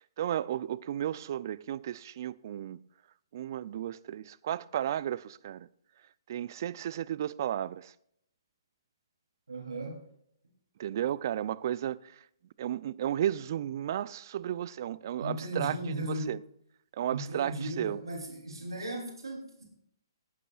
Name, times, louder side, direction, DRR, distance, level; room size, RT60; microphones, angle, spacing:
voice 1, 0.2-2.8 3.3-5.7 6.3-7.9 10.8-12.0 12.6-15.8 16.1-16.4 17.0-18.0, right 11 dB, 50° right, 0.5 m, -33 dB
voice 2, 9.5-10.0 15.2-16.4 17.1-19.7, right 1 dB, 85° right, 3.3 m, -37 dB
18.0 x 12.0 x 2.4 m
hypercardioid pair, 135°, 2 cm